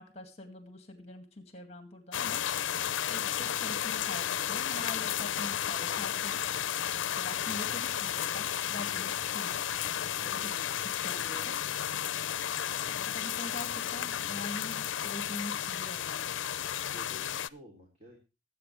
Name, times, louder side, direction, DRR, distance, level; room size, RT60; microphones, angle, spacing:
voice 1, 0.0-2.8 3.1-6.4 6.6-9.5 9.9-10.4 10.8-11.6 12.7-16.4, left 1 dB, 30° left, 6 dB, 2.1 m, -44 dB
sound 1, 2.1-17.5, left 10 dB, 75° left, 0.5 m, -33 dB
voice 2, 3.1-3.4 10.2-10.7 16.8-18.2, left 1 dB, 35° right, 0 dB, 3.1 m, -52 dB
20.5 x 8.6 x 3.3 m, 0.30 s
head